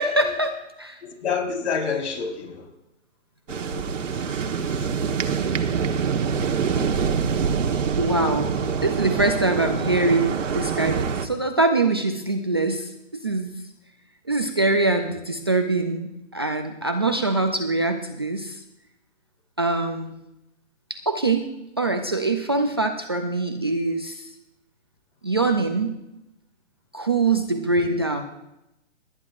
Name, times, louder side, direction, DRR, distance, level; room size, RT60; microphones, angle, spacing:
voice 1, 0.0-1.0 8.0-8.5 8.8-12.9 13.2-13.5 14.3-18.6 19.6-20.1 20.9-21.5 21.8-24.2 25.2-25.9 26.9-28.2, right 2 dB, 20° right, 4 dB, 0.4 m, -23 dB
voice 2, 1.0-2.7 3.5-4.9, left 5 dB, 65° left, 2 dB, 4.2 m, -30 dB
sound 1, 3.5-11.3, right 6 dB, 80° right, 1.2 m, -25 dB
29.0 x 9.7 x 2.5 m, 0.87 s
hypercardioid pair, 155°, 37 cm